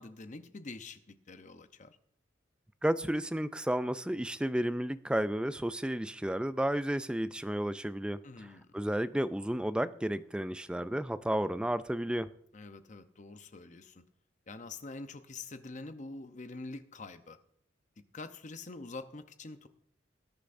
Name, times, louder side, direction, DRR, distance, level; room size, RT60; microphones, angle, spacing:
voice 1, 0.0-2.0 8.2-8.8 12.5-14.0 14.5-17.4 18.1-19.7, left 3 dB, 40° left, 0.8 m, -45 dB
voice 2, 2.8-8.5 8.7-12.3, right 1 dB, 5° right, 0.3 m, -32 dB
19.5 x 10.0 x 2.6 m
head